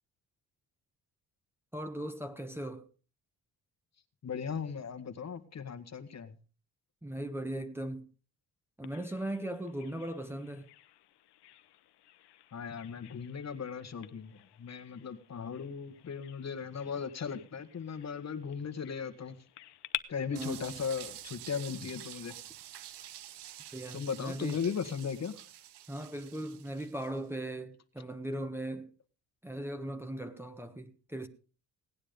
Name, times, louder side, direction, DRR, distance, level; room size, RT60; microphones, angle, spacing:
voice 1, 1.7-2.8 7.0-8.1 8.8-10.7 20.3-20.8 23.7-24.6 25.9-28.9 29.4-31.3, right 1 dB, 5° right, 1.3 m, -38 dB
voice 2, 4.2-6.3 12.5-19.4 20.1-22.3 23.9-25.3, left 6 dB, 40° left, 1.6 m, -37 dB
Bird vocalization bird call bird song, 8.8-20.0, left 15 dB, 75° left, 1.0 m, -49 dB
sound 1, 20.3-27.2, right 12 dB, 85° right, 1.2 m, -48 dB
18.0 x 9.8 x 5.2 m
cardioid pair, 110°, 40 cm